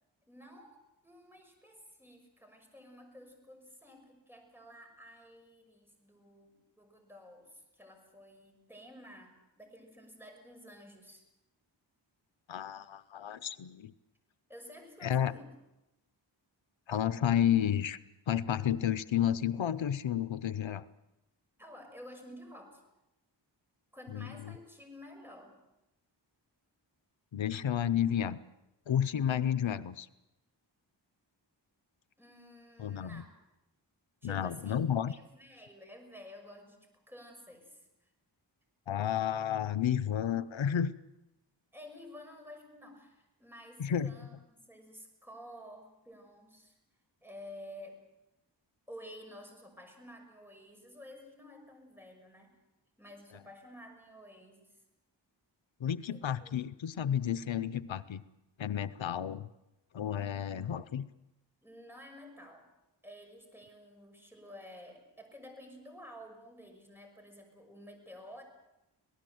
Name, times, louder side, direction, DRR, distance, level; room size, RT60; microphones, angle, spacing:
voice 1, 0.3-0.8 1.0-11.2 14.5-15.5 21.6-22.8 23.9-25.6 32.2-33.3 34.2-34.8 35.1-38.1 41.7-46.8 47.2-48.0 48.9-52.5 53.0-54.8 56.1-56.5 61.6-62.6 63.0-68.4, equal, 5° right, 2 dB, 6.1 m, -52 dB
voice 2, 12.5-13.9 15.0-15.3 16.9-18.0 18.3-20.8 24.1-24.5 27.3-28.4 28.9-30.1 32.8-33.2 34.2-35.2 38.9-40.9 43.8-44.1 55.8-58.2 58.6-59.5 59.9-61.1, left 9 dB, 90° left, 14 dB, 0.8 m, -31 dB
26.0 x 18.0 x 7.8 m, 0.93 s
wide cardioid pair, 85°, 45 cm